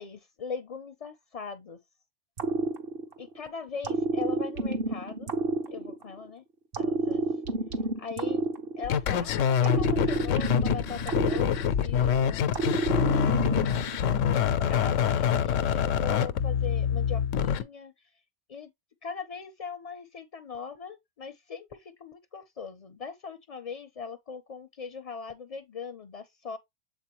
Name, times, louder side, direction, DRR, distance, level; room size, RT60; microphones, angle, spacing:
voice 1, 0.0-1.8 3.2-5.3 5.7-6.4 6.8-7.2 8.0-8.4 8.8-17.9 18.5-18.7 19.0-26.6, left 5 dB, 45° left, 0.5 m, -40 dB
sound 1, 2.4-3.4 3.8-6.3 6.7-9.2 9.6-12.1 12.5-14.0, right 2 dB, 50° right, 1.1 m, -29 dB
sound 2, 8.8-17.6, left 8 dB, 90° left, 1.0 m, -26 dB
8.3 x 3.9 x 3.0 m
omnidirectional pair, 1.3 m